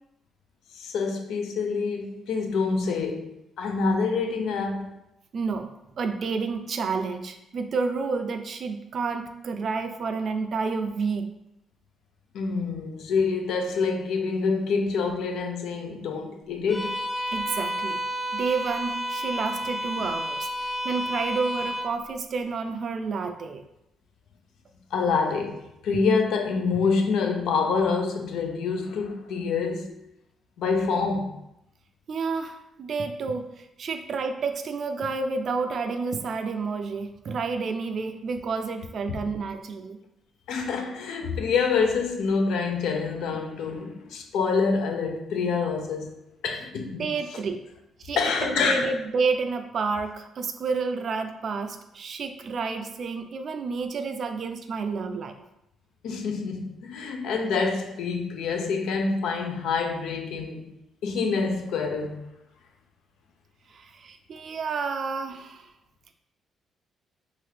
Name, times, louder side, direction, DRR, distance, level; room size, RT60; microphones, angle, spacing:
voice 1, 0.7-3.3 3.6-4.9 12.3-17.0 20.0-20.1 24.9-29.9 30.6-31.3 40.5-46.1 46.4-47.1 48.2-48.9 56.0-60.7 61.0-62.2, left 4 dB, 80° left, 0.4 m, -26 dB
voice 2, 5.3-5.7 6.0-11.3 17.3-18.0 18.3-20.5 20.8-23.6 32.1-40.0 46.9-47.6 48.0-55.3 63.7-65.7, right 4 dB, 55° right, 0.3 m, -30 dB
Bowed string instrument, 16.7-22.0, equal, 30° left, 0.9 m, -31 dB
2.8 x 2.4 x 3.2 m
cardioid pair, 90°, 0 cm